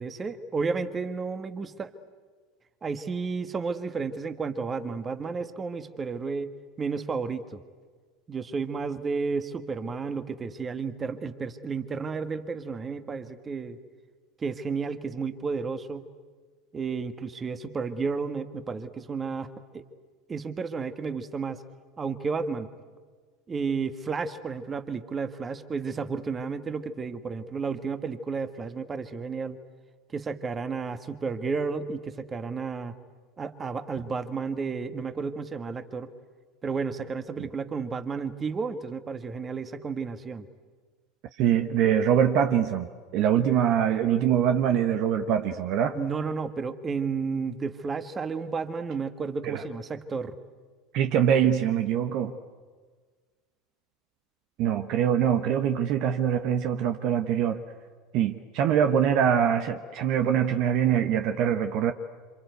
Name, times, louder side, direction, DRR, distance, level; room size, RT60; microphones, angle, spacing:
voice 1, 0.0-1.9 2.8-7.6 8.3-13.8 14.4-16.1 16.7-19.8 20.3-21.6 22.0-22.7 23.5-29.6 30.1-32.9 33.4-36.1 36.6-40.5 45.9-50.4, right 5 dB, 25° right, 10 dB, 1.7 m, -32 dB
voice 2, 41.4-42.9 43.1-46.0 49.4-49.6 50.9-52.3 54.6-57.6 58.1-61.9, right 9 dB, 50° right, 7 dB, 1.2 m, -23 dB
27.5 x 27.0 x 8.1 m, 1.5 s
figure-of-eight pair, 75°, 0 cm